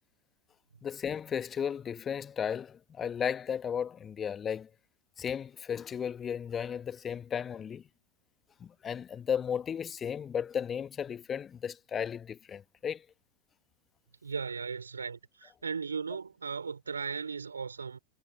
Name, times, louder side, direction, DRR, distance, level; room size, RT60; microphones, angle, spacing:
voice 1, 0.8-4.7 5.2-7.8 8.6-13.0, left 8 dB, 20° left, 1.4 m, -34 dB
voice 2, 14.2-18.0, right 5 dB, 75° right, 5.7 m, -37 dB
figure-of-eight pair, 90°, 0 cm